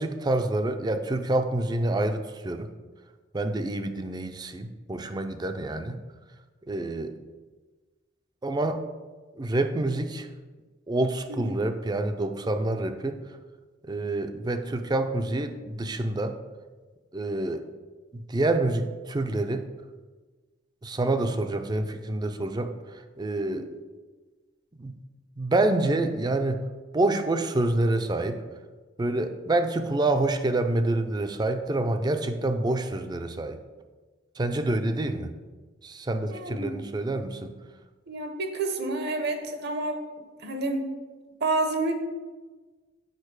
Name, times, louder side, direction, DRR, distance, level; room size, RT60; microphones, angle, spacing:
voice 1, 0.0-2.7 3.3-6.0 6.7-7.1 8.4-8.9 9.4-10.3 10.9-13.2 13.9-16.4 17.1-17.7 18.1-19.7 20.8-23.6 24.8-24.9 25.4-26.6 26.9-28.4 29.0-33.6 34.4-35.3 35.8-37.5, right 2 dB, 20° right, 8 dB, 0.4 m, -27 dB
voice 2, 11.3-11.6 23.5-23.8 36.3-36.8 38.1-40.9 41.4-41.9, right 2 dB, 60° right, 6 dB, 0.8 m, -30 dB
6.6 x 5.1 x 4.7 m, 1.3 s
head